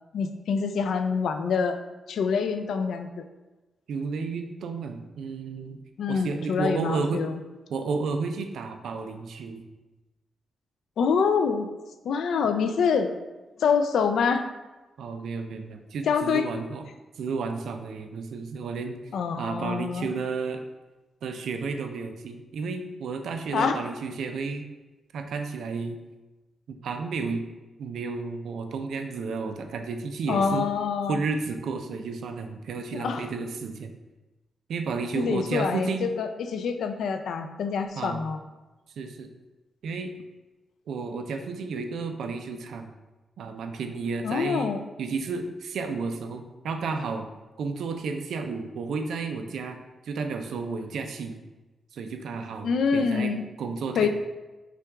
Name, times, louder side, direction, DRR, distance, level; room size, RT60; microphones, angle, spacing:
voice 1, 0.1-1.8 2.1-3.2 6.0-7.4 11.0-11.7 12.0-13.1 13.6-14.5 16.1-16.5 19.1-20.1 23.5-23.8 30.3-31.2 32.9-33.3 35.1-38.4 44.2-44.8 52.6-53.4 54.0-54.1, left 5 dB, 80° left, 8 dB, 0.3 m, -26 dB
voice 2, 3.9-5.8 6.1-7.2 7.7-9.6 15.0-16.8 17.2-19.0 19.4-20.6 21.2-24.7 25.1-26.0 26.7-27.5 27.8-30.7 31.1-33.9 34.7-36.1 37.9-38.3 39.0-39.3 39.8-40.1 40.9-42.9 43.4-44.7 45.0-47.3 47.6-49.8 50.0-51.4 51.9-53.3 53.6-54.1, right 4 dB, 80° right, 6 dB, 0.4 m, -32 dB
5.7 x 2.3 x 3.5 m, 1.1 s
wide cardioid pair, 165°, 0 cm